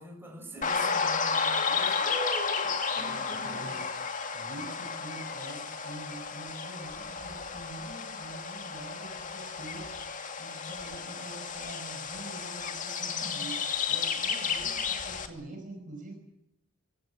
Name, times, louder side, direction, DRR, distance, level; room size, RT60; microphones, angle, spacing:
voice 1, 0.0-2.7 2.9-3.8 10.4-10.9 13.0-13.5, right 1 dB, 10° right, 1 dB, 7.3 m, -43 dB
sound 1, 0.6-15.3, left 5 dB, 35° left, 2.5 m, -32 dB
voice 2, 3.0-3.9 4.3-16.1, right 2 dB, 35° right, 3 dB, 5.4 m, -45 dB
26.5 x 16.0 x 9.4 m, 0.82 s
head